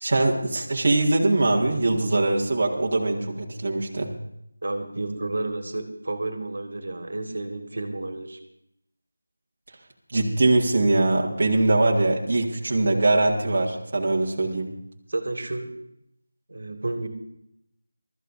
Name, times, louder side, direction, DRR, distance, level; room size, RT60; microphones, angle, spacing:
voice 1, 0.0-4.1 10.1-14.7, right 2 dB, 40° right, -2 dB, 1.9 m, -22 dB
voice 2, 4.6-8.4 15.1-15.7 16.5-17.1, right 2 dB, 70° right, 5 dB, 2.1 m, -31 dB
23.5 x 13.5 x 2.7 m, 0.78 s
figure-of-eight pair, 175°, 0 cm